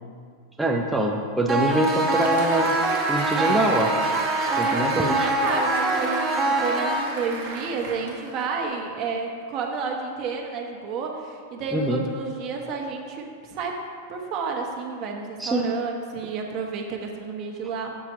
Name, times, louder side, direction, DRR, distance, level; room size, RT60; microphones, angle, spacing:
voice 1, 0.6-2.8 3.1-3.9 4.6-5.3 11.7-12.0 15.4-15.7, right 1 dB, 5° right, -1 dB, 0.6 m, -24 dB
sound 1, 1.5-7.5, right 1 dB, 25° right, 1.0 m, -24 dB
Applause, 1.5-8.6, right 4 dB, 65° right, 1.2 m, -33 dB
voice 2, 4.6-13.8 14.1-17.9, right 4 dB, 45° right, 2 dB, 1.2 m, -31 dB
6.8 x 6.3 x 4.6 m, 2.1 s
hypercardioid pair, 130°, 0 cm